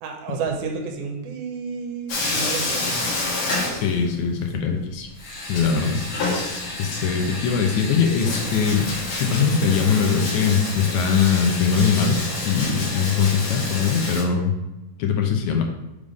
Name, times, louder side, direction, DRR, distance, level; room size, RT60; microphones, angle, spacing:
voice 1, 0.0-3.1, right 5 dB, 85° right, 2 dB, 2.7 m, -31 dB
Bathtub (filling or washing), 2.1-4.4 4.6-4.7 5.2-14.2, left 2 dB, 50° left, 2.0 m, -28 dB
voice 2, 3.8-5.1 5.5-6.4 6.8-8.9 9.2-14.5 15.0-15.6, left 6 dB, 75° left, 2 dB, 1.8 m, -21 dB
6.5 x 3.6 x 5.1 m, 0.98 s
omnidirectional pair, 4.2 m